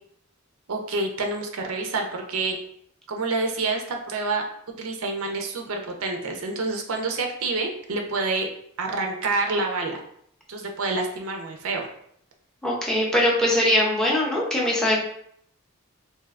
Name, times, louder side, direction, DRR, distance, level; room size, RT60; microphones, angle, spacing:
voice 1, 0.7-2.6 3.1-4.5 4.8-8.5 8.8-10.0 10.5-11.9, right 3 dB, 80° right, 3 dB, 0.5 m, -27 dB
voice 2, 12.6-15.0, left 1 dB, 5° left, -3 dB, 0.6 m, -21 dB
3.3 x 2.7 x 2.4 m, 0.69 s
head